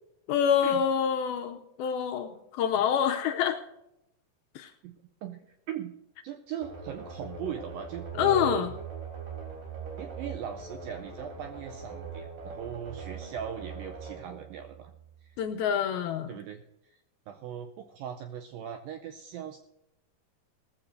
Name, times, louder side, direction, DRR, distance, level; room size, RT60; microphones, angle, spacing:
voice 1, 0.3-3.6 4.6-4.7 8.2-8.7 15.4-16.3, left 8 dB, 80° left, 5 dB, 2.2 m, -26 dB
voice 2, 6.2-8.7 10.0-14.9 15.2-15.4 16.3-16.9 17.3-19.6, right 9 dB, 85° right, 5 dB, 2.0 m, -39 dB
sound 1, 6.6-15.3, right 5 dB, 55° right, 5.0 m, -41 dB
19.0 x 14.0 x 2.6 m, 0.87 s
omnidirectional pair, 4.8 m